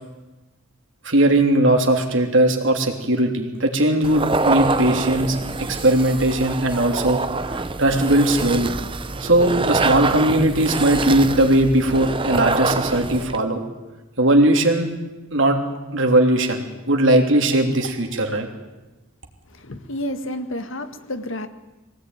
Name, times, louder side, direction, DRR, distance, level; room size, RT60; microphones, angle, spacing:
voice 1, 1.0-7.2 7.5-8.7 9.2-13.6 14.2-14.9 15.3-15.6 15.9-18.5, right 1 dB, 65° right, 3 dB, 3.2 m, -19 dB
sound 1, 4.0-13.4, right 3 dB, 25° right, 0.7 m, -25 dB
voice 2, 19.5-21.5, left 1 dB, 65° left, 8 dB, 1.7 m, -30 dB
23.5 x 18.0 x 9.4 m, 1.1 s
head